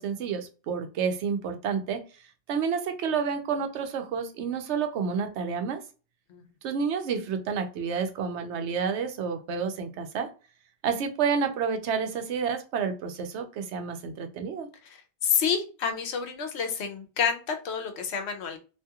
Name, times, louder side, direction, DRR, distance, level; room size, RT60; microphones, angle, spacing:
voice 1, 0.0-2.0 2.5-5.8 6.6-10.3 10.8-14.7, right 6 dB, 90° right, 6 dB, 0.9 m, -29 dB
voice 2, 14.8-18.6, left 7 dB, 80° left, 6 dB, 0.9 m, -29 dB
2.6 x 2.3 x 2.8 m, 0.34 s
omnidirectional pair, 1.1 m